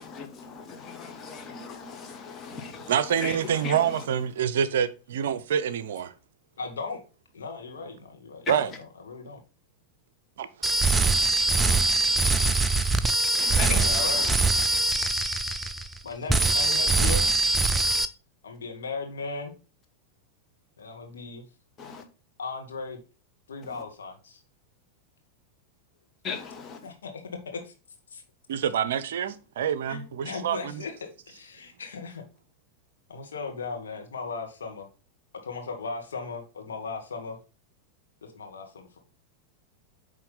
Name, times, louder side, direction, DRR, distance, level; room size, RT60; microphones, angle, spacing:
voice 1, 0.0-4.1 8.4-8.8 13.4-14.4 17.1-17.3 21.8-22.0 23.7-23.8 26.2-26.8, left 5 dB, 25° left, 1.2 m, -38 dB
voice 2, 2.9-6.1 8.5-8.7 10.4-10.5 28.7-30.8, right 8 dB, 60° right, 0.5 m, -26 dB
voice 3, 6.6-7.0 7.3-9.4 13.7-14.2 16.0-17.3 18.4-19.5 20.8-21.4 22.4-23.0 23.5-24.4 26.8-26.9 27.5-27.7 29.8-30.9 31.3-32.2 33.1-34.9 35.4-37.4 38.2-39.0, left 4 dB, 65° left, 1.4 m, -37 dB
sound 1, 10.6-16.0 16.3-18.1, right 3 dB, 10° right, 0.5 m, -23 dB
8.6 x 3.1 x 3.9 m
figure-of-eight pair, 90°, 0 cm